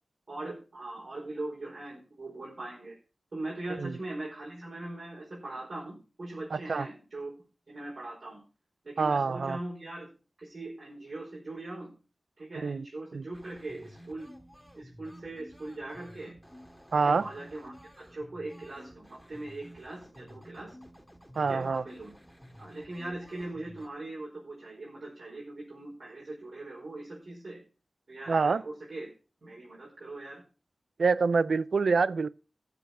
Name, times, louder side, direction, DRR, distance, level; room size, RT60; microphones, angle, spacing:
voice 1, 0.3-2.9 3.3-7.3 7.7-8.4 8.8-10.1 10.4-11.9 12.4-14.3 14.7-16.3 17.0-20.7 21.4-22.1 22.6-27.6 28.1-29.1 29.4-30.4, right 2 dB, 60° right, 4.9 m, -40 dB
voice 2, 6.5-6.9 9.0-9.6 12.6-12.8 13.1-13.2 16.9-17.2 21.4-21.8 28.3-28.6 31.0-32.3, right 4 dB, 85° right, 0.5 m, -26 dB
sound 1, 13.3-23.9, equal, 5° right, 2.0 m, -52 dB
14.0 x 7.0 x 5.4 m
wide cardioid pair, 75°, 0 cm